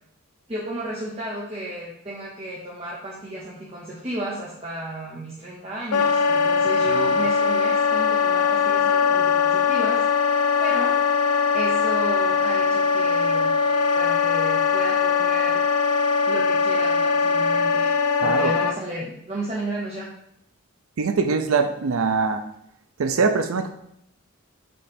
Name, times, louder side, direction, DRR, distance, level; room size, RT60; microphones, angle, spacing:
voice 1, 0.5-10.0 10.6-11.0 11.5-13.5 13.9-15.6 16.3-17.9 18.2-20.1, right 1 dB, 25° right, -4 dB, 0.9 m, -33 dB
Wind instrument woodwind instrument, 5.9-18.8, left 5 dB, 85° left, 0.4 m, -21 dB
voice 2, 18.2-18.5 21.0-22.4 23.0-23.7, right 4 dB, 70° right, 8 dB, 0.5 m, -22 dB
6.9 x 3.2 x 5.2 m, 0.75 s
head